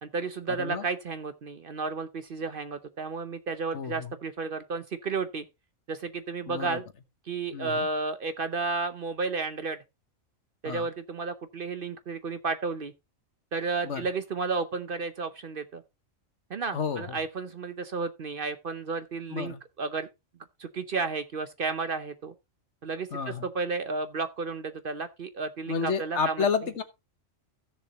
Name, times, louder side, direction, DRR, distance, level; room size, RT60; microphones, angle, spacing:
voice 1, 0.0-5.4 5.9-6.8 7.2-9.8 10.6-12.9 13.5-15.8 16.5-20.1 20.6-22.3 22.8-26.5, right 4 dB, 50° right, 0.8 m, -32 dB
voice 2, 3.7-4.1 6.5-6.8 7.5-7.9 10.6-10.9 13.8-14.1 16.7-17.2 19.3-19.6 23.1-23.5 25.7-26.8, left 6 dB, 60° left, 1.4 m, -30 dB
15.5 x 6.9 x 2.9 m
omnidirectional pair, 1.3 m